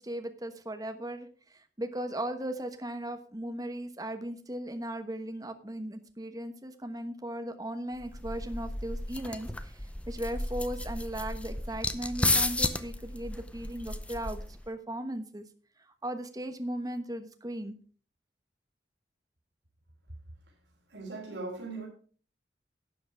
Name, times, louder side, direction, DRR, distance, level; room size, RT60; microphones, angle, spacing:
voice 1, 0.0-15.4 15.8-17.8, right 1 dB, 20° right, 1.2 m, -37 dB
sound 1, 8.0-14.7, left 2 dB, 5° left, 0.6 m, -33 dB
voice 2, 20.9-21.9, right 3 dB, 85° right, 3.6 m, -39 dB
12.0 x 8.1 x 4.7 m
head